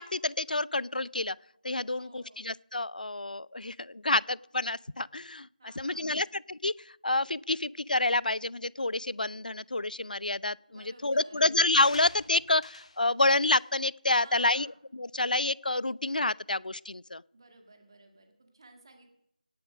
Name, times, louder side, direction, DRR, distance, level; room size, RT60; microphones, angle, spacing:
voice 1, 0.0-1.4 1.6-5.5 5.8-14.7 14.9-17.2, left 2 dB, 75° left, 24 dB, 0.3 m, -28 dB
voice 2, 1.9-2.5 5.6-6.3 10.7-11.5 14.1-14.7 17.3-19.1, right 2 dB, 30° right, 4 dB, 1.8 m, -54 dB
sound 1, 11.8-13.0 13.4-13.7 14.2-14.4, left 2 dB, 45° left, 0.9 m, -47 dB
17.5 x 7.0 x 5.0 m, 0.76 s
figure-of-eight pair, 170°, 5 cm